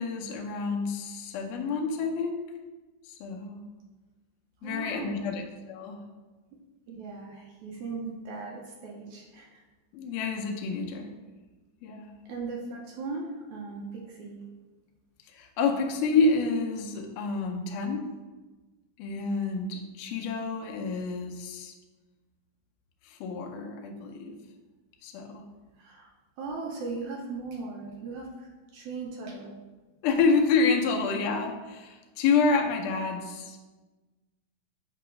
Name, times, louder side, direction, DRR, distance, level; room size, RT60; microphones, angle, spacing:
voice 1, 0.0-2.4 3.1-3.7 4.6-6.0 9.9-11.1 11.8-12.1 15.3-18.1 19.0-21.7 23.1-24.3 25.0-25.4 30.0-33.6, left 4 dB, 75° left, 1 dB, 2.1 m, -28 dB
voice 2, 4.6-5.5 6.9-9.6 12.3-14.4 25.8-26.1 26.4-29.5, right 3 dB, 70° right, -2 dB, 1.9 m, -38 dB
7.7 x 2.9 x 5.0 m, 1.2 s
omnidirectional pair, 4.0 m